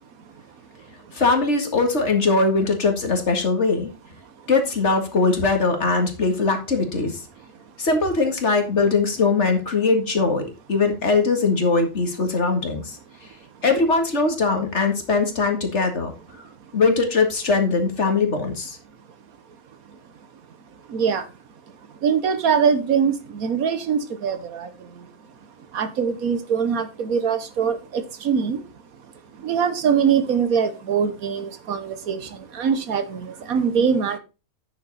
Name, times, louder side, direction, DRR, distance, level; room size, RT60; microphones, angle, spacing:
voice 1, 1.1-3.9 4.5-7.2 7.8-13.3 13.6-16.1 16.7-18.8, left 3 dB, 50° left, 2.2 m, -21 dB
voice 2, 20.9-21.3 22.0-25.1 25.7-28.6 29.0-34.2, right 7 dB, 70° right, 1.4 m, -23 dB
9.5 x 7.2 x 4.0 m
omnidirectional pair, 1.6 m